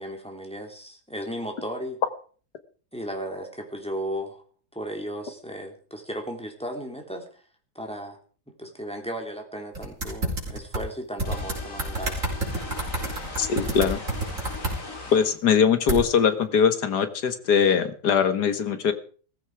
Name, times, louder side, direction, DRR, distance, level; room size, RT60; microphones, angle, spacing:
voice 1, 0.0-2.0 2.9-4.4 4.7-7.4 7.7-8.2 8.6-12.2, equal, 5° left, 2 dB, 3.2 m, -35 dB
sound 1, 9.7-10.8 11.2-14.7 15.9-16.0, right 2 dB, 50° right, 5.1 m, -28 dB
sound 2, 11.2-15.4, left 2 dB, 50° left, 3.7 m, -39 dB
voice 2, 13.4-14.0 15.1-18.9, left 7 dB, 80° left, 11 dB, 2.1 m, -21 dB
17.0 x 15.0 x 4.8 m, 0.42 s
omnidirectional pair, 1.7 m